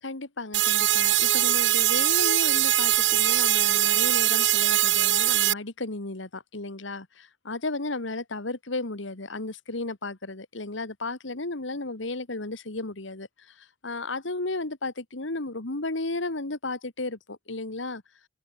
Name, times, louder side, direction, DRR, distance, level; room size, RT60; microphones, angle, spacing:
voice 1, 0.0-18.0, left 2 dB, 70° left, 1.9 m, -34 dB
sound 1, 0.5-5.5, right 13 dB, 70° right, 1.8 m, -22 dB
open air
head